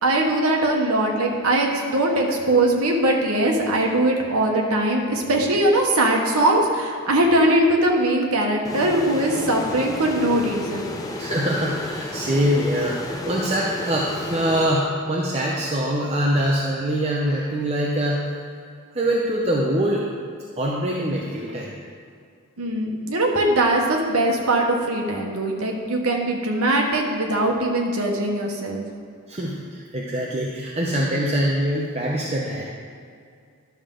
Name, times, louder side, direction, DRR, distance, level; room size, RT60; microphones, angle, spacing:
voice 1, 0.0-10.9 22.6-28.8, right 1 dB, 85° right, 0 dB, 1.2 m, -21 dB
sound 1, 8.6-15.3, left 2 dB, 15° left, 0.6 m, -32 dB
voice 2, 11.2-18.2 18.9-20.1 20.6-21.7 29.3-32.6, equal, 30° right, -4 dB, 0.7 m, -24 dB
11.5 x 6.6 x 3.8 m, 2.3 s
head